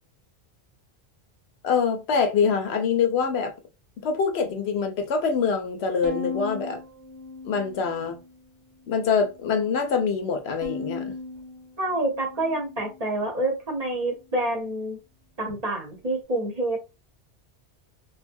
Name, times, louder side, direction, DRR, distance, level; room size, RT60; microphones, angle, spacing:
voice 1, 1.6-3.5 4.0-6.8 7.4-8.2 8.9-11.1, left 5 dB, 70° left, 0.8 m, -24 dB
Bowed string instrument, 6.0-8.4 8.9-9.6 10.6-13.1, left 4 dB, 90° right, 1.1 m, -38 dB
voice 2, 11.8-15.0 15.4-16.8, right 1 dB, 40° right, 0.8 m, -27 dB
2.6 x 2.3 x 2.5 m
omnidirectional pair, 1.1 m